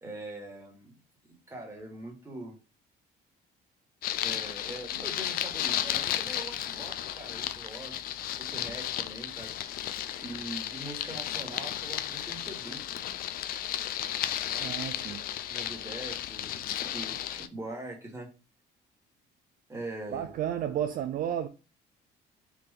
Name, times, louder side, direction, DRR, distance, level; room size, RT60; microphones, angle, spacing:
voice 1, 0.0-0.9 1.5-2.6 4.2-8.0 8.4-9.5 10.2-12.8 14.5-14.8 15.5-18.3 19.7-20.3, right 2 dB, 15° right, 1.6 m, -42 dB
sound 1, 4.0-17.5, left 11 dB, 60° left, 0.4 m, -34 dB
voice 2, 14.6-15.2 20.1-21.5, right 10 dB, 55° right, 0.4 m, -32 dB
3.4 x 2.8 x 3.7 m
cardioid pair, 110°, 17 cm